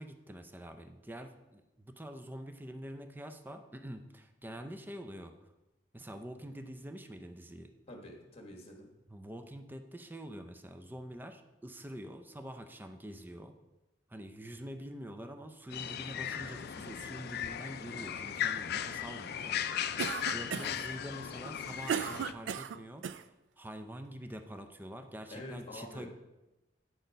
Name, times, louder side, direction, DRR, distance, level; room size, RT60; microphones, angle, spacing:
voice 1, 0.0-5.3 5.9-7.7 9.1-13.5 14.1-19.7 20.3-23.0 23.6-26.1, right 1 dB, 10° right, 7 dB, 0.5 m, -46 dB
voice 2, 7.9-8.9 20.5-20.8 25.3-26.1, left 1 dB, 35° left, 1 dB, 1.4 m, -46 dB
sound 1, 15.7-22.3, left 9 dB, 60° left, 0.4 m, -37 dB
Cough, 20.0-20.9 21.4-23.2, right 7 dB, 75° right, 0.3 m, -36 dB
9.0 x 4.2 x 5.2 m, 1.0 s
head